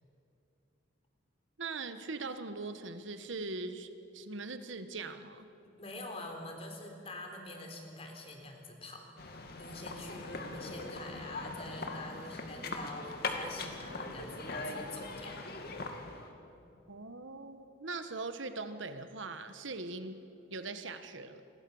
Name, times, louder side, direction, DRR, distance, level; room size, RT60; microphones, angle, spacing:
voice 1, 1.6-5.5 16.9-20.2 20.5-21.4, right 3 dB, 70° right, 9 dB, 1.4 m, -41 dB
voice 2, 5.8-15.5 16.1-16.3, left 2 dB, 30° left, 3 dB, 3.8 m, -46 dB
sound 1, 9.2-16.3, left 3 dB, 50° left, 2.4 m, -41 dB
29.0 x 22.0 x 7.2 m, 2.8 s
head